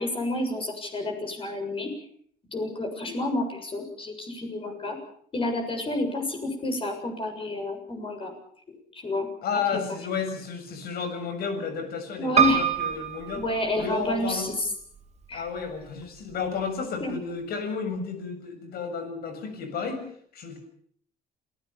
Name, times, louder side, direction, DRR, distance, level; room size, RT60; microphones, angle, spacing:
voice 1, 0.0-1.9 2.5-5.0 5.3-8.3 8.9-9.3 9.7-9.8 12.2-12.6 13.3-14.5 15.3-15.4 17.0-17.1, left 2 dB, 30° left, 4 dB, 7.2 m, -29 dB
voice 2, 9.4-13.4 13.8-14.5 15.3-20.0 20.3-20.6, left 5 dB, 65° left, 7 dB, 7.1 m, -32 dB
Piano, 12.4-14.3 15.0-15.7 16.0-16.1 16.3-16.4, right 9 dB, 40° right, 2.8 m, -25 dB
28.0 x 17.5 x 7.1 m, 0.62 s
cardioid pair, 110°, 17 cm